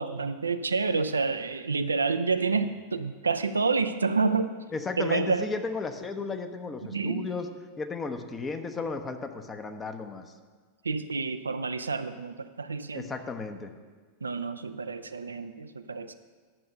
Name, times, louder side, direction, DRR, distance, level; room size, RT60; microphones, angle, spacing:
voice 1, 0.0-4.5 5.0-5.5 6.9-7.3 10.8-13.1 14.2-16.1, right 4 dB, 75° right, 9 dB, 0.5 m, -28 dB
voice 2, 4.7-7.5 7.8-10.2 12.9-13.7, left 4 dB, 20° left, 7 dB, 0.9 m, -34 dB
10.5 x 6.6 x 6.6 m, 1.5 s
figure-of-eight pair, 90°, 0 cm